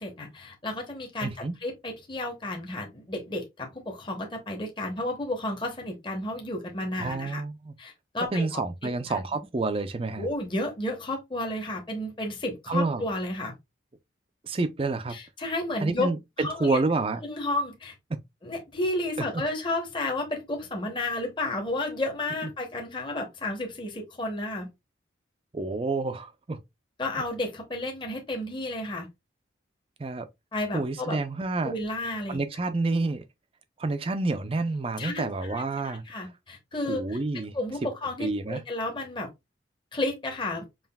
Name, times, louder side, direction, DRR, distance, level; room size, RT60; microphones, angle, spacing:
voice 1, 0.0-7.4 7.8-9.2 10.2-13.5 15.1-16.1 16.4-16.8 17.2-17.9 18.4-24.7 27.0-29.1 30.5-31.2 31.6-32.4 35.0-39.3 39.9-40.6, left 2 dB, 25° left, 0.9 m, -32 dB
voice 2, 1.2-1.5 7.0-7.8 8.3-10.3 12.7-13.0 14.4-15.2 15.8-17.2 18.1-18.2 19.2-19.4 25.5-26.6 30.0-30.3 30.7-31.7 32.3-33.3 33.8-36.0 36.9-37.5 38.2-38.6, right 3 dB, 30° right, 0.4 m, -28 dB
5.6 x 2.5 x 2.3 m
head